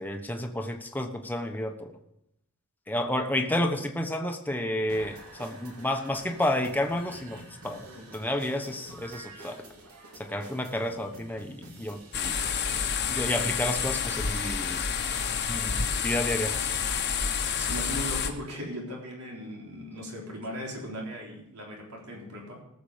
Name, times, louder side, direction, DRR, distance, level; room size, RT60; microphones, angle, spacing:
voice 1, 0.0-1.9 2.9-9.6 10.2-12.4 13.1-14.9 15.5-16.5, left 1 dB, 10° left, 4 dB, 1.1 m, -31 dB
sound 1, 4.9-12.9, right 1 dB, 70° right, 2.8 m, -48 dB
sound 2, 12.1-18.3, left 6 dB, 50° left, 1.2 m, -29 dB
voice 2, 17.6-22.6, equal, 90° right, -2 dB, 4.0 m, -38 dB
18.5 x 7.0 x 5.0 m, 0.82 s
head